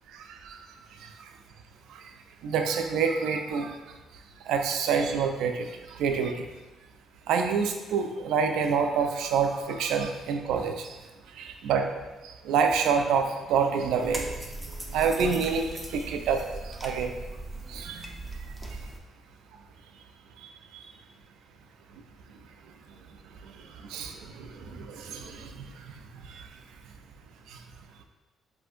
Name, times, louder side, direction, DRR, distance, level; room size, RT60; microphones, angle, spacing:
voice 1, 0.1-0.6 0.9-1.3 1.9-2.1 2.4-3.8 4.4-6.5 7.3-11.0 11.3-11.9 12.2-17.1 17.7-18.1 18.7-18.8 20.4-20.8 23.4-26.6 27.5-27.6, right 6 dB, 90° right, 5 dB, 0.3 m, -28 dB
sound 1, 14.0-19.0, right 2 dB, ahead, 0.5 m, -39 dB
3.5 x 2.5 x 2.5 m, 1.2 s
cardioid pair, 90°, 0 cm